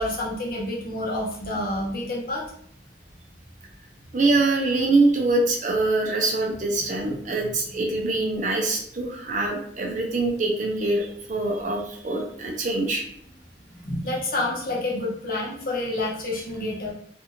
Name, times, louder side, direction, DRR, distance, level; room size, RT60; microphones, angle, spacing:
voice 1, 0.0-2.4 13.8-16.9, left 1 dB, 50° left, -3 dB, 0.8 m, -28 dB
voice 2, 4.1-13.0, right 2 dB, 45° right, 1 dB, 0.5 m, -24 dB
2.6 x 2.5 x 2.8 m, 0.65 s
head